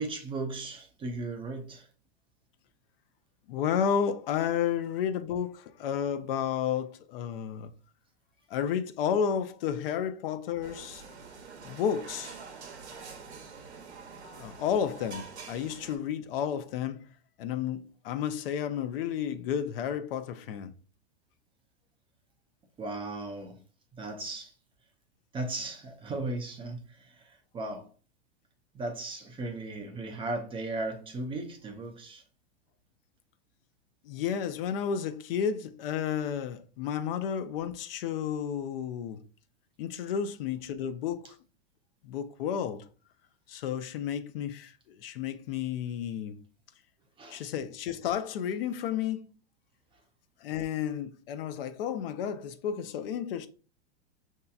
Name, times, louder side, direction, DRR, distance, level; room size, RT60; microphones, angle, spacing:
voice 1, 0.0-1.9 11.7-11.8 22.8-23.6 23.9-24.5 25.3-27.9 28.7-32.2 47.2-47.5, right 2 dB, 15° right, 0.5 m, -36 dB
voice 2, 3.5-7.7 8.5-11.0 11.6-12.4 14.4-17.0 17.4-20.7 34.0-39.2 39.8-41.4 42.0-42.9 43.5-46.4 47.3-49.3 50.4-53.5, left 8 dB, 60° left, 0.5 m, -32 dB
sound 1, 10.6-16.0, right 5 dB, 90° right, 0.9 m, -46 dB
5.6 x 2.8 x 2.3 m
hypercardioid pair, 120°, 32 cm